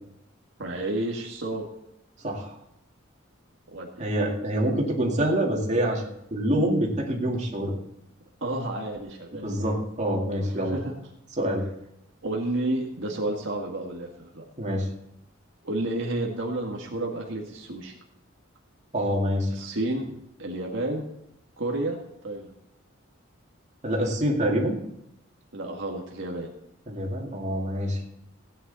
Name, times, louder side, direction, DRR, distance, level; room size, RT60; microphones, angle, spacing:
voice 1, 0.6-1.6 3.7-4.1 8.4-9.4 10.3-10.9 12.2-14.4 15.6-17.9 19.5-20.1 20.4-21.1 21.6-22.0 22.2-22.5 25.5-26.5, right 1 dB, 65° right, -1 dB, 1.9 m, -31 dB
voice 2, 2.2-2.5 4.0-6.0 6.3-7.8 9.3-10.8 11.4-11.6 14.6-14.9 18.9-19.5 23.8-24.8 26.9-28.0, equal, 35° right, -1 dB, 2.5 m, -26 dB
16.5 x 9.5 x 4.2 m, 0.81 s
head